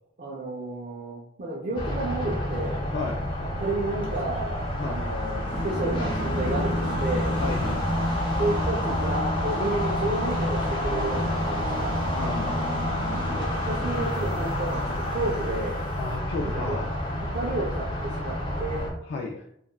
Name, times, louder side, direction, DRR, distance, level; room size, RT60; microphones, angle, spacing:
voice 1, 0.2-2.8 3.4-7.3 8.4-12.0 13.4-15.8 16.4-16.8 17.2-18.9, right 2 dB, 45° right, -4 dB, 0.5 m, -31 dB
sound 1, 1.7-18.9, equal, 30° left, 0.7 m, -29 dB
voice 2, 2.9-3.3 4.8-5.0 7.4-7.8 12.2-12.8 16.0-16.9 19.1-19.5, left 3 dB, 75° left, 0 dB, 0.3 m, -33 dB
sound 2, 5.4-16.1, left 1 dB, 10° right, 1.5 m, -33 dB
3.4 x 2.3 x 2.2 m, 0.75 s
head